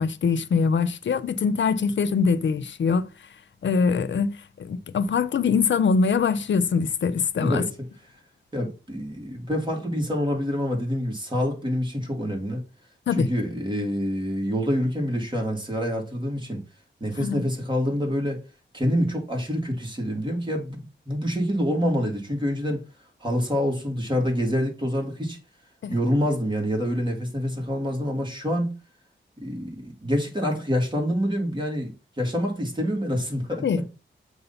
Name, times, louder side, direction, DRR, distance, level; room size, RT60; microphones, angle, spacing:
voice 1, 0.0-3.1 3.6-7.6 13.1-13.3 17.2-17.4 25.8-26.0 33.6-33.9, left 5 dB, 70° left, 0.6 m, -23 dB
voice 2, 8.5-12.6 13.2-16.6 17.0-18.4 18.7-22.8 23.2-25.4 25.9-28.8 29.4-33.8, equal, 25° right, 2.2 m, -26 dB
7.8 x 2.7 x 5.6 m
wide cardioid pair, 80°, 20 cm